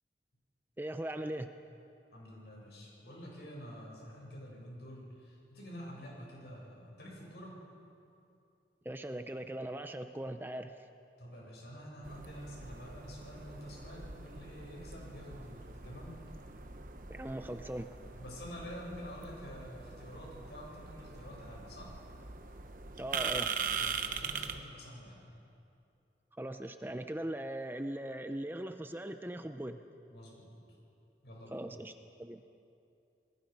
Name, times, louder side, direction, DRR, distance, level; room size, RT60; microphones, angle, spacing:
voice 1, 0.8-1.5 8.8-10.7 17.1-17.9 23.0-23.5 26.4-29.8 31.5-32.4, right 1 dB, 10° right, 7 dB, 0.6 m, -40 dB
voice 2, 2.1-7.5 11.2-16.2 18.2-21.9 23.8-25.2 30.1-30.8 31.2-31.6, equal, 70° left, -3 dB, 7.8 m, -48 dB
sound 1, 12.0-24.6, right 6 dB, 50° right, 1.1 m, -42 dB
30.0 x 20.0 x 5.4 m, 2.6 s
head